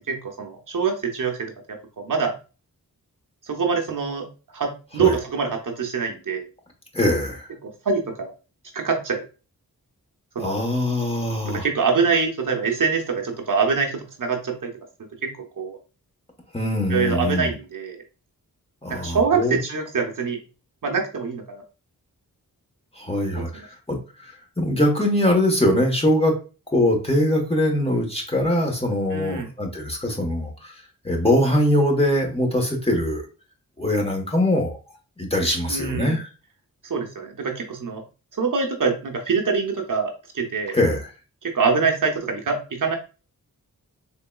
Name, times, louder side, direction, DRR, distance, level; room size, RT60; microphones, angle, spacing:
voice 1, 0.1-2.3 3.4-4.3 4.5-6.4 7.6-8.3 8.7-9.2 10.3-10.6 11.5-14.7 15.2-15.8 16.9-18.0 18.9-20.4 20.8-21.6 23.3-23.6 29.1-29.5 35.7-36.2 36.8-38.0 38.4-40.8 41.4-43.0, right 5 dB, 60° right, 2 dB, 0.8 m, -24 dB
voice 2, 6.9-7.5 10.4-11.7 16.5-17.5 18.8-19.6 22.9-26.3 26.7-30.8 31.0-33.2 33.8-34.8 35.2-36.3 40.7-41.1, left 1 dB, 15° left, 1 dB, 1.1 m, -22 dB
3.8 x 3.5 x 2.2 m, 0.33 s
wide cardioid pair, 75°, 36 cm